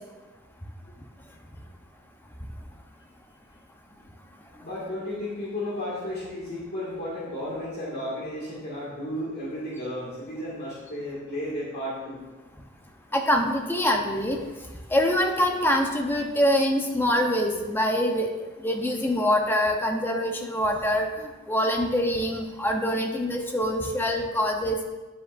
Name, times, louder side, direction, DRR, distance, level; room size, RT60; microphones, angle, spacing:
voice 1, 4.6-12.2, left 1 dB, 55° left, -7 dB, 1.9 m, -33 dB
voice 2, 13.1-14.4 14.9-18.3 18.6-24.8, equal, 10° left, 2 dB, 0.7 m, -24 dB
9.7 x 7.3 x 2.5 m, 1.2 s
head